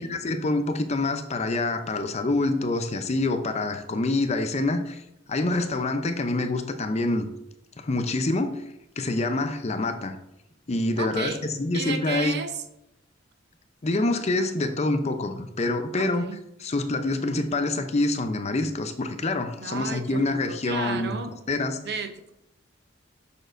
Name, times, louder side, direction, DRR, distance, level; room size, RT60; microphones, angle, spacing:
voice 1, 0.0-5.0 5.3-7.3 7.8-8.6 9.0-10.2 10.7-11.3 11.6-12.4 13.8-16.3 16.6-21.1 21.5-21.8, left 2 dB, 35° left, 8 dB, 0.5 m, -26 dB
voice 2, 11.0-11.5 11.7-12.6 16.0-16.4 19.6-21.4 21.8-22.3, right 4 dB, 60° right, 9 dB, 0.6 m, -33 dB
7.0 x 6.4 x 2.5 m, 0.84 s
head